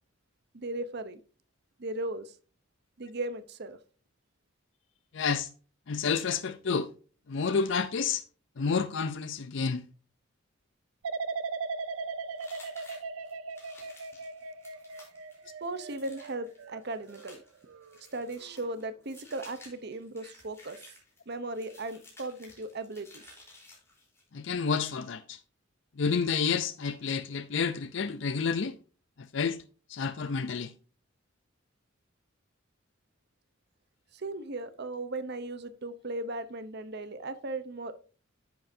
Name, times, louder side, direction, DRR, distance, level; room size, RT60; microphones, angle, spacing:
voice 1, 0.5-1.2 1.8-2.4 3.0-3.8 15.6-17.4 18.1-20.8 21.3-23.2 34.1-38.0, right 2 dB, 55° right, 0.8 m, -37 dB
voice 2, 5.1-5.5 5.9-6.9 7.3-8.2 8.6-9.8 24.3-25.4 26.0-28.7 29.2-29.6 29.9-30.7, left 5 dB, 65° left, 0.5 m, -29 dB
sound 1, 11.0-18.0 18.4-18.8, right 4 dB, 85° right, 0.5 m, -39 dB
sound 2, 12.4-24.3, left 2 dB, 15° left, 3.8 m, -55 dB
10.5 x 7.7 x 2.7 m
head